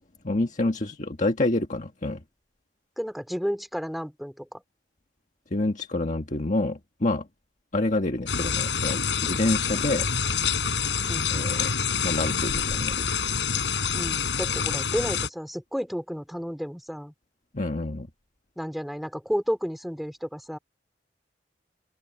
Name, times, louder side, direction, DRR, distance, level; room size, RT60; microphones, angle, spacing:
voice 1, 0.2-2.2 5.5-7.3 7.7-10.1 11.3-11.7 12.0-13.1 17.5-18.1, left 2 dB, 45° left, 1.5 m, -27 dB
voice 2, 3.0-4.6 11.1-11.3 13.9-17.1 18.6-20.6, equal, ahead, 2.5 m, -32 dB
sound 1, 8.3-15.3, left 6 dB, 85° left, 6.5 m, -27 dB
open air
head